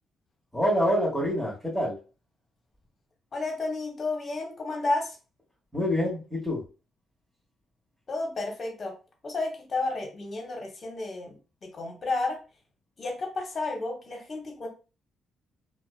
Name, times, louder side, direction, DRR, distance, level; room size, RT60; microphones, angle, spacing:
voice 1, 0.5-2.0 5.7-6.6, equal, 5° right, -8 dB, 1.1 m, -26 dB
voice 2, 3.3-5.2 8.1-8.9 9.2-12.4 13.0-14.7, left 3 dB, 45° left, 2 dB, 0.9 m, -32 dB
2.4 x 2.1 x 2.3 m, 0.33 s
supercardioid pair, 65°, 0 cm